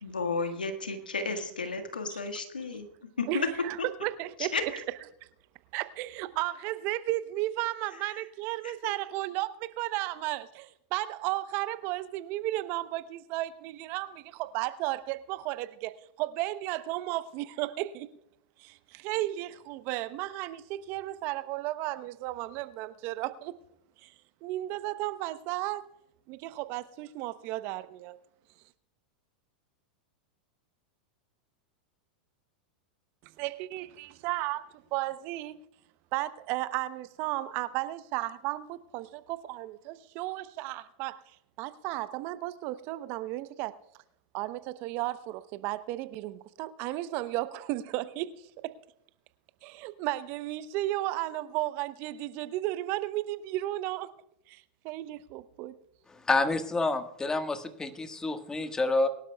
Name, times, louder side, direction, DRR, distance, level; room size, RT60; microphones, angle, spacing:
voice 1, 0.0-2.9 3.2-3.5 4.4-4.6 8.6-8.9, left 4 dB, 90° left, 1.7 m, -32 dB
voice 2, 3.3-3.8 4.0-4.8 5.7-18.1 18.6-23.5 24.0-24.1 24.4-25.8 26.3-28.2 33.2-35.6 36.1-41.2 41.6-43.8 44.3-48.7 49.6-54.1 54.5-55.7, right 16 dB, 50° right, 0.9 m, -34 dB
voice 3, 56.3-59.1, left 2 dB, 15° left, 1.5 m, -28 dB
23.5 x 12.0 x 2.3 m
hypercardioid pair, 95°, 5 cm